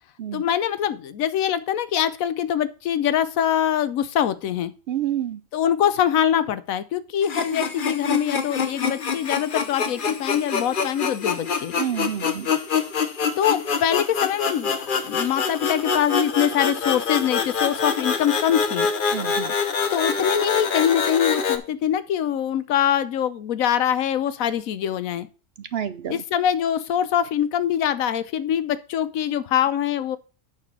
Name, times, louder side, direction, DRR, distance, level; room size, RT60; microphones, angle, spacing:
voice 1, 0.3-4.7 5.5-11.7 13.4-18.9 19.9-25.3 26.1-30.2, left 10 dB, 85° left, 14 dB, 1.1 m, -23 dB
voice 2, 4.9-5.4 11.8-12.5 19.1-19.5 25.7-26.2, right 10 dB, 65° right, 13 dB, 0.6 m, -28 dB
sound 1, 7.2-21.6, left 5 dB, 45° left, 0.9 m, -25 dB
8.8 x 4.5 x 6.0 m, 0.36 s
omnidirectional pair, 1.4 m